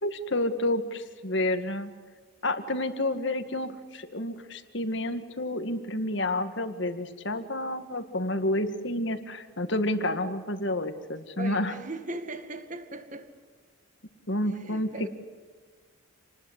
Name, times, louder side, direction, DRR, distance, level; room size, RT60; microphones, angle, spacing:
voice 1, 0.0-1.9 2.4-11.8 14.3-15.1, left 1 dB, 55° left, 2.0 m, -29 dB
voice 2, 11.4-13.3 14.5-15.1, right 1 dB, 35° right, 2.1 m, -38 dB
28.5 x 20.0 x 8.3 m
head